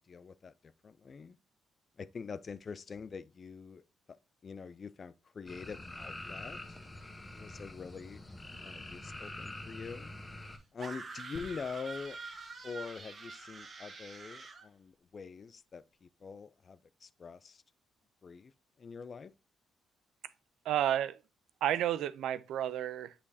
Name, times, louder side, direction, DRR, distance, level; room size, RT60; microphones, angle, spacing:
voice 1, 0.1-1.4 2.0-3.8 4.4-6.8 7.3-8.2 8.6-10.1 10.7-12.2 12.6-17.6 18.2-18.5 18.8-19.3, left 5 dB, 40° left, 0.4 m, -45 dB
sound 1, 5.5-10.6, left 1 dB, 15° left, 1.2 m, -46 dB
sound 2, 10.8-14.7, right 4 dB, 40° right, 1.3 m, -46 dB
sound 3, 11.3-14.9 15.6-15.7, left 5 dB, 60° left, 1.0 m, -56 dB
voice 2, 20.6-21.2 21.6-23.1, right 11 dB, 80° right, 0.5 m, -31 dB
8.4 x 5.1 x 2.7 m
cardioid pair, 90°, 0 cm